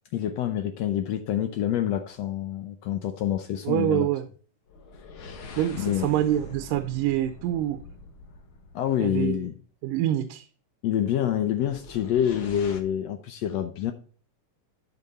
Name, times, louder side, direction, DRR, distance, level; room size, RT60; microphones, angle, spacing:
voice 1, 0.1-4.1 5.7-6.1 8.7-9.5 10.8-13.9, left 10 dB, 75° left, 1.5 m, -27 dB
sound 1, 1.9-2.2 4.7-9.2 11.6-12.8, left 3 dB, 55° left, 1.5 m, -43 dB
voice 2, 3.6-4.3 5.6-7.8 9.0-9.5 9.8-10.5, right 12 dB, 90° right, 2.3 m, -26 dB
11.5 x 5.4 x 4.0 m
omnidirectional pair, 3.8 m